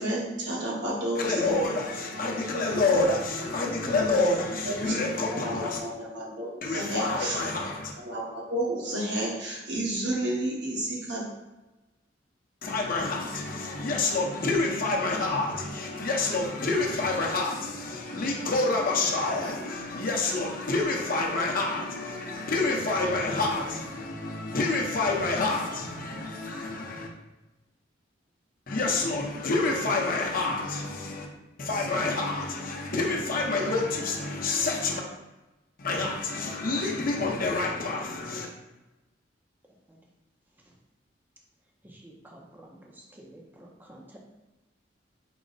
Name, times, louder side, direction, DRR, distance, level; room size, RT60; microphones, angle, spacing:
voice 1, 0.0-1.8 2.7-2.8 4.6-5.0 5.3-7.4 8.0-11.3, right 1 dB, 70° right, -4 dB, 1.1 m, -31 dB
voice 2, 1.2-5.8 6.6-7.9 12.6-27.1 28.7-31.3 31.6-35.0 35.8-38.5, left 3 dB, 50° left, -1 dB, 0.7 m, -28 dB
voice 3, 41.8-44.2, right 1 dB, 10° right, -1 dB, 0.5 m, -50 dB
4.6 x 2.1 x 3.9 m, 1.1 s
head